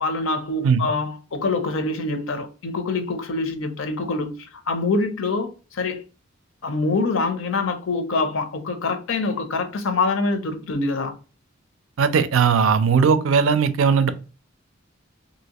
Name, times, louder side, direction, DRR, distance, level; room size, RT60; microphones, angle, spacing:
voice 1, 0.0-6.0 6.6-11.1, left 3 dB, 70° left, 0.6 m, -25 dB
voice 2, 12.0-14.1, right 6 dB, 80° right, 0.4 m, -18 dB
2.8 x 2.7 x 2.8 m
head